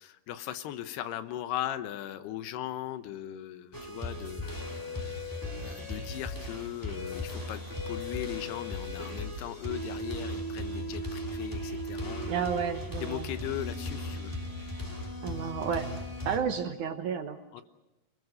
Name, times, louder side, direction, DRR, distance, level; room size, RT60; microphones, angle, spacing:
voice 1, 0.0-4.5 5.0-5.3 5.6-12.3 13.0-14.4 17.5-17.6, left 12 dB, 85° left, 11 dB, 3.1 m, -38 dB
sound 1, 3.7-16.4, left 1 dB, 5° left, 2.1 m, -37 dB
voice 2, 12.3-13.3 15.2-15.9 16.3-17.4, right 7 dB, 65° right, 7 dB, 2.1 m, -31 dB
27.5 x 21.0 x 6.5 m, 1.0 s
omnidirectional pair, 4.6 m